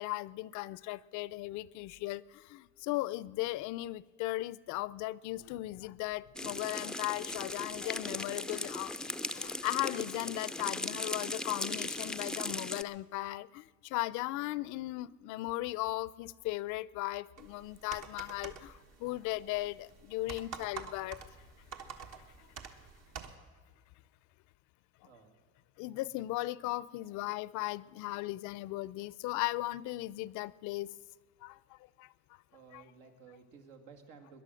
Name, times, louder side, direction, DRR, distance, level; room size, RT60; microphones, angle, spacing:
voice 1, 0.0-9.0 9.3-21.2 25.8-30.9 31.4-32.1 32.7-32.8, left 18 dB, 75° left, 0.5 m, -37 dB
sound 1, 6.4-12.8, left 1 dB, 5° left, 0.4 m, -38 dB
sound 2, 17.4-23.4, right 6 dB, 60° right, 1.4 m, -48 dB
voice 2, 25.0-25.4 32.5-34.4, right 5 dB, 85° right, 2.1 m, -55 dB
19.5 x 11.0 x 6.3 m
cardioid pair, 125°, 30 cm